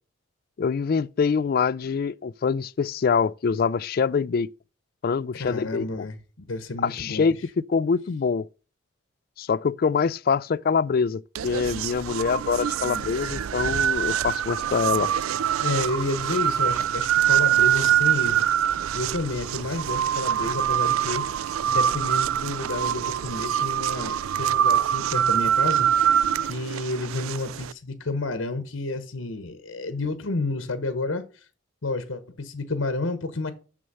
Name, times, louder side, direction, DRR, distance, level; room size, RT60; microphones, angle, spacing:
voice 1, 0.6-4.5 5.0-6.1 6.8-8.5 9.4-15.1, left 5 dB, 45° left, 0.3 m, -25 dB
voice 2, 5.3-6.2 6.5-7.4 15.6-21.2 21.7-25.9 26.4-31.2 31.8-33.5, left 2 dB, 80° left, 1.0 m, -30 dB
sound 1, 11.4-27.7, right 10 dB, 90° right, 0.3 m, -24 dB
6.8 x 6.2 x 5.5 m
head